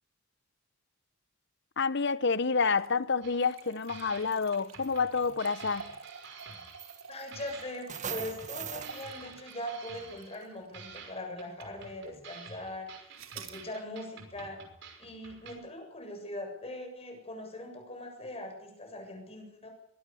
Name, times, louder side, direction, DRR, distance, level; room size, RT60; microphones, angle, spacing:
voice 1, 1.8-5.9, left 5 dB, 55° left, 0.9 m, -28 dB
sound 1, 2.6-11.1 11.6-11.7 13.1-13.6, right 6 dB, 90° right, 3.1 m, -50 dB
sound 2, 3.2-3.6 3.9-7.1 7.3-10.5 10.7-15.5, right 5 dB, 60° right, 5.8 m, -49 dB
sound 3, 4.3-4.5 4.8-5.3 6.4-6.5 6.8-7.5 7.9-9.0, right 7 dB, 35° right, 1.8 m, -40 dB
voice 2, 7.1-13.1 13.3-14.6 15.0-19.7, left 1 dB, 30° left, 7.5 m, -41 dB
23.5 x 18.0 x 7.1 m
head